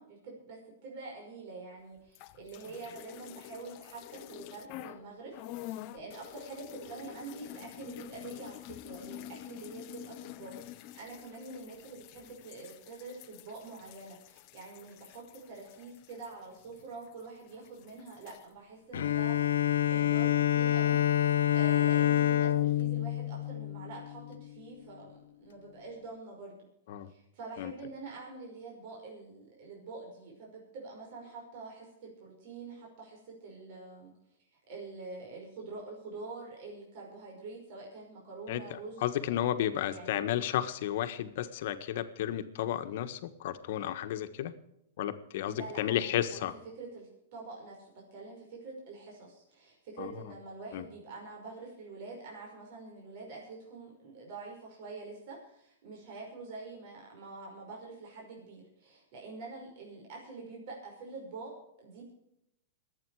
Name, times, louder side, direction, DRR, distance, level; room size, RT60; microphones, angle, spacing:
voice 1, 0.0-19.6 19.9-26.5 27.1-34.1 34.5-39.3 39.7-40.2 45.5-46.5 46.7-62.1, right 3 dB, 50° right, -2 dB, 5.5 m, -46 dB
sound 1, 2.1-5.0 5.3-17.2 17.5-18.4, left 14 dB, 40° left, 0.8 m, -48 dB
Bowed string instrument, 18.9-24.4, left 11 dB, 85° left, 0.7 m, -27 dB
voice 2, 38.5-44.5 45.0-46.5 50.0-50.2 50.7-50.8, left 11 dB, 60° left, 9 dB, 1.4 m, -33 dB
23.0 x 8.8 x 4.9 m, 0.80 s
hypercardioid pair, 145°, 0 cm